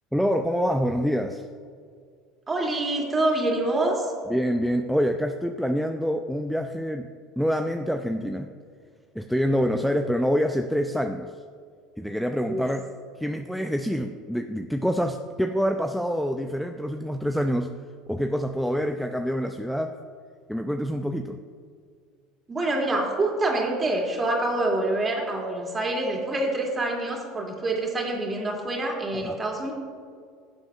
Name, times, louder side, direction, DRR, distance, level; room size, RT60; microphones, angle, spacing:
voice 1, 0.1-1.4 4.3-7.1 7.4-8.5 9.1-11.3 12.0-12.9 13.2-17.7 18.1-20.0 20.5-21.4 29.2-29.4, equal, ahead, 5 dB, 0.5 m, -26 dB
voice 2, 2.5-4.1 12.4-12.6 22.5-29.7, right 2 dB, 25° right, 0 dB, 2.7 m, -26 dB
17.0 x 7.7 x 2.5 m, 2.2 s
hypercardioid pair, 75°, 0 cm